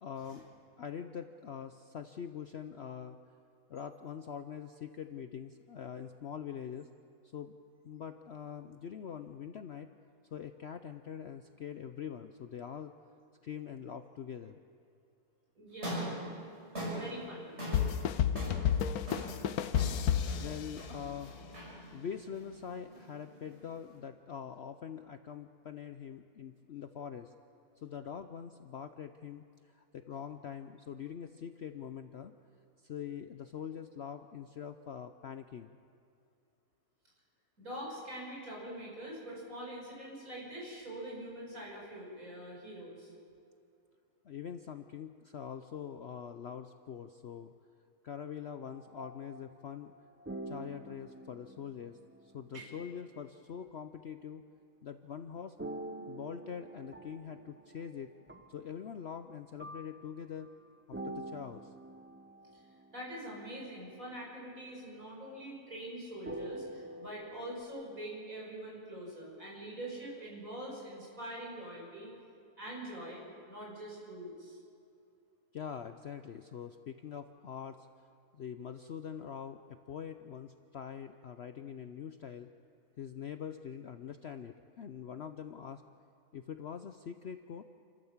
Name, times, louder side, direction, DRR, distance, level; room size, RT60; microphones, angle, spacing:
voice 1, 0.0-3.2 3.7-6.9 7.3-7.6 7.8-9.9 10.3-12.9 13.4-14.6 20.3-21.4 21.9-27.3 27.7-32.3 32.8-35.8 44.2-47.5 48.0-49.9 50.5-54.5 54.8-58.1 58.5-60.5 60.9-61.7 75.5-78.1 78.3-82.5 83.0-85.8 86.3-87.6, left 8 dB, 55° left, 8 dB, 0.7 m, -44 dB
voice 2, 15.5-16.3 17.0-17.6 37.6-43.1 52.5-52.7 62.5-62.6 62.9-72.1 72.6-73.2 73.5-74.6, right 1 dB, 60° right, -3 dB, 6.8 m, -44 dB
sound 1, 15.7-24.0, right 1 dB, 40° right, 6.8 m, -43 dB
sound 2, 17.7-21.3, left 9 dB, 75° left, 1.2 m, -31 dB
sound 3, 48.6-52.7 55.6-59.2 59.6-63.2 63.6-63.9 66.3-67.6, right 1 dB, 10° right, 0.6 m, -47 dB
29.0 x 13.5 x 7.3 m, 2.5 s
omnidirectional pair, 1.7 m